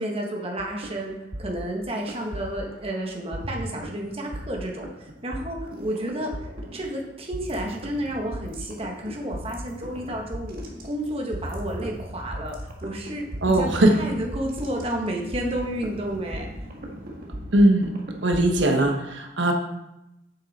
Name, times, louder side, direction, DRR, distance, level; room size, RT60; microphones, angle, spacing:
voice 1, 0.0-10.6 10.8-16.5, right 1 dB, 35° right, 0 dB, 1.3 m, -31 dB
sound 1, 0.6-2.9 3.3-19.0, equal, 55° right, 1.6 m, -37 dB
voice 2, 13.4-14.0 17.5-17.9 18.2-19.5, right 1 dB, 80° right, 3 dB, 1.1 m, -19 dB
8.3 x 6.6 x 4.1 m, 0.91 s
head